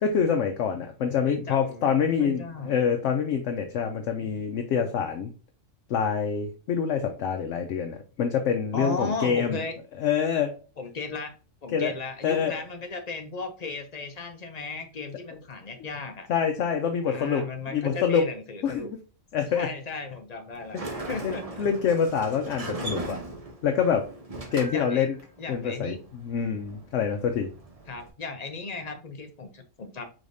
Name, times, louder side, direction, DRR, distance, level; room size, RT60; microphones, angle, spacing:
voice 1, 0.0-5.3 5.9-9.6 10.0-10.5 11.7-11.9 12.2-12.6 16.3-18.3 18.6-19.0 19.3-19.7 20.7-23.2 23.6-24.1 24.5-25.2 25.5-27.5, left 7 dB, 70° left, 4 dB, 0.9 m, -26 dB
voice 2, 1.2-2.7 8.7-9.7 10.8-11.3 11.6-16.3 17.1-18.9 19.5-20.8 21.1-21.5 24.7-25.1 25.4-26.0 27.9-30.0, left 3 dB, 40° left, 6 dB, 0.7 m, -36 dB
Sliding door, 20.5-28.1, right 2 dB, 30° right, 0.8 m, -39 dB
4.9 x 3.9 x 2.6 m, 0.37 s
omnidirectional pair, 1.4 m